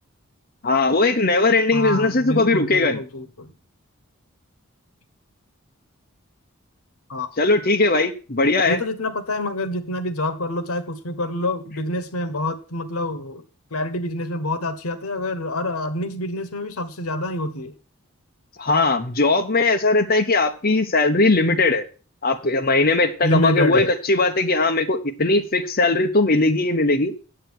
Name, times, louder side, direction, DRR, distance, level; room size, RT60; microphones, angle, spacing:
voice 1, 0.6-3.0 7.4-8.8 18.6-21.8 22.2-27.1, left 3 dB, 45° left, 5 dB, 1.1 m, -19 dB
voice 2, 1.7-3.5 7.1-7.3 8.7-13.4 13.7-17.8 23.2-24.0, left 1 dB, 90° left, 12 dB, 1.2 m, -26 dB
9.1 x 7.9 x 6.2 m, 0.35 s
head